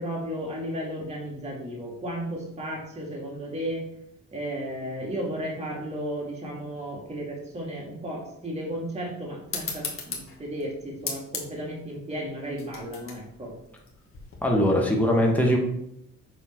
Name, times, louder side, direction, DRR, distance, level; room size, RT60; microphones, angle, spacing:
voice 1, 0.0-3.8 4.3-13.5, equal, 20° right, -2 dB, 2.2 m, -34 dB
sound 1, 9.5-14.6, left 4 dB, 45° left, 1.7 m, -38 dB
voice 2, 14.4-15.6, equal, 5° left, -1 dB, 1.4 m, -21 dB
7.1 x 3.7 x 4.4 m, 0.79 s
cardioid pair, 90°, 30 cm